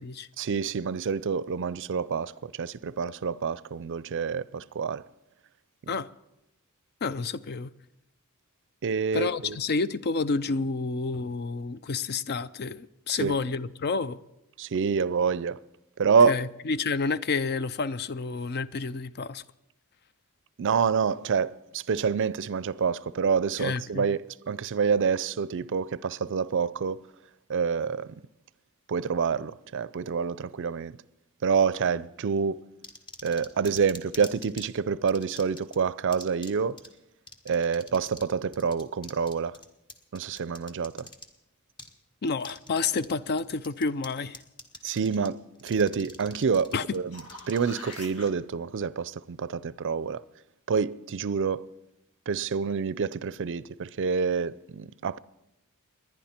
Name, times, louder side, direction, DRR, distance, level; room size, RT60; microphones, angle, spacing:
voice 1, 0.4-5.0 5.8-5.9 8.8-9.6 13.1-13.4 14.6-15.6 16.0-16.4 20.6-27.0 27.5-28.1 28.9-31.0 31.4-32.6 33.2-36.8 37.5-39.6 40.1-41.1 44.8-50.2 50.7-51.7 52.3-55.2, right 6 dB, 55° right, 0.4 m, -27 dB
voice 2, 7.0-7.7 9.1-14.2 16.2-19.4 23.6-24.0 42.2-44.4 46.7-46.8, left 4 dB, 45° left, 0.5 m, -29 dB
sound 1, 32.8-34.7 35.1-35.8 36.1-36.5 36.8-36.9 37.3-38.3 38.5-41.3 41.8-41.9 42.4-43.1 43.4-44.1 44.3-45.3 45.6-48.0, left 1 dB, 20° left, 1.3 m, -44 dB
sound 2, 46.9-48.3 53.1-53.2, left 2 dB, 70° left, 2.0 m, -44 dB
29.5 x 10.5 x 4.4 m
head